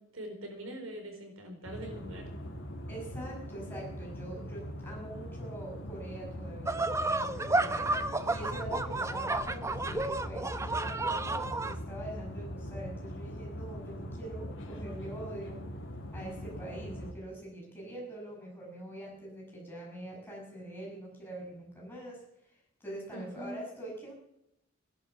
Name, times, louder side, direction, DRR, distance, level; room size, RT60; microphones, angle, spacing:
voice 1, 0.1-2.3 23.1-23.6, right 1 dB, 80° right, 3 dB, 4.3 m, -43 dB
sound 1, 1.6-17.1, equal, 65° left, 2.8 m, -41 dB
voice 2, 2.9-7.9 8.3-15.6 16.1-22.2 22.5-24.1, right 1 dB, 10° left, -2 dB, 7.4 m, -44 dB
sound 2, 6.7-11.8, right 2 dB, 15° right, 0.7 m, -31 dB
17.0 x 11.0 x 7.3 m, 0.78 s
head